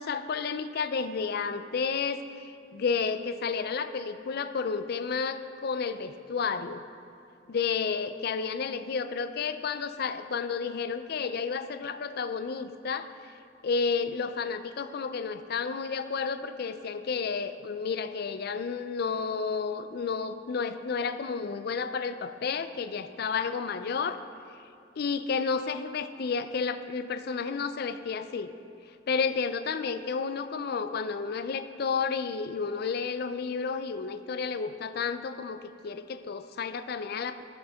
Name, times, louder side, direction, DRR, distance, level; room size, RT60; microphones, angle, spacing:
voice 1, 0.0-6.8 7.5-13.1 13.6-24.2 25.0-28.5 29.1-37.4, left 5 dB, 50° left, 11 dB, 0.4 m, -31 dB
14.5 x 6.4 x 3.5 m, 2.6 s
head